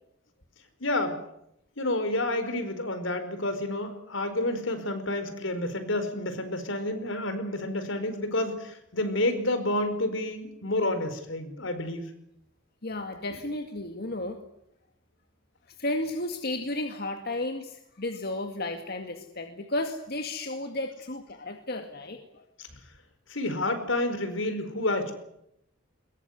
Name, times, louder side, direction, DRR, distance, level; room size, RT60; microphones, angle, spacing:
voice 1, 0.8-1.2 1.8-12.0 22.6-22.7 23.3-25.1, left 1 dB, 75° left, 9 dB, 4.9 m, -29 dB
voice 2, 12.8-14.4 15.8-22.4, left 2 dB, 55° left, 5 dB, 2.1 m, -33 dB
22.0 x 21.5 x 9.7 m, 0.78 s
head